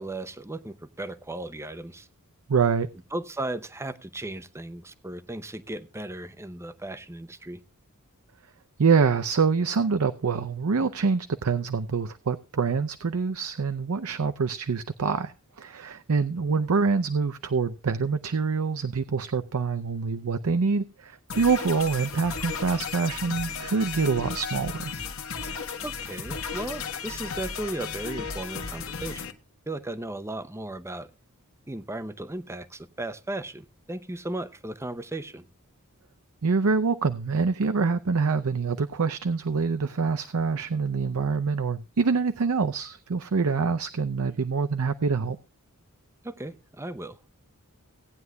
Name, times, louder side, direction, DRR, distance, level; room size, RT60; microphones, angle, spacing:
voice 1, 0.0-2.1 3.1-7.6 25.8-29.2 29.7-31.1 31.7-35.4 46.2-47.2, right 2 dB, 10° right, 12 dB, 0.7 m, -36 dB
voice 2, 2.5-2.9 8.8-24.9 36.4-45.4, right 5 dB, 75° right, 10 dB, 0.6 m, -25 dB
sound 1, 21.3-29.3, left 5 dB, 65° left, 1.3 m, -35 dB
17.5 x 9.5 x 2.3 m, 0.30 s
head